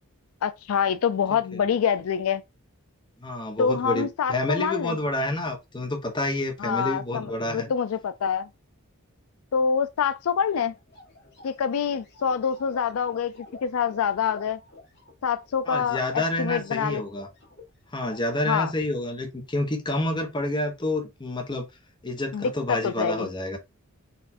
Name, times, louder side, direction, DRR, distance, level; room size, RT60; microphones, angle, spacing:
voice 1, 0.4-2.4 3.6-4.9 6.6-8.5 9.5-10.7 11.4-13.4 13.6-14.6 15.2-17.0 18.5-18.7 22.3-23.3, left 7 dB, 70° left, 0.4 m, -26 dB
voice 2, 3.2-7.7 15.7-17.3 17.9-21.7 22.0-23.6, left 1 dB, 20° left, 1.0 m, -28 dB
sound 1, 5.1-5.6 7.1-7.9 10.1-10.2 10.5-17.7 17.9-18.4, left 2 dB, 50° left, 1.8 m, -49 dB
4.2 x 2.5 x 4.3 m
head